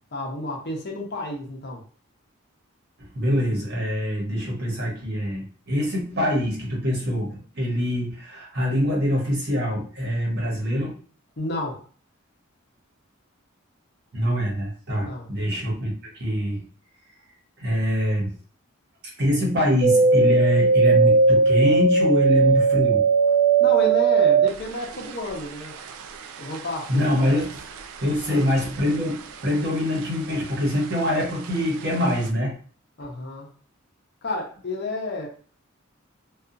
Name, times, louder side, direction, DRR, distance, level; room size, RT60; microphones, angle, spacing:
voice 1, 0.1-1.8 11.4-11.8 15.0-15.3 23.6-25.7 26.4-27.1 28.2-28.4 33.0-33.5 34.2-35.3, left 1 dB, 50° left, -1 dB, 0.7 m, -31 dB
voice 2, 3.1-10.9 14.1-16.6 17.6-18.3 19.2-23.0 26.9-27.6 28.0-29.2 29.4-32.5, equal, 50° right, -3 dB, 1.1 m, -24 dB
sound 1, 19.8-29.2 29.5-30.3 30.7-31.6 32.0-32.1, right 4 dB, 85° right, 0.3 m, -20 dB
2.7 x 2.3 x 2.5 m, 0.42 s
head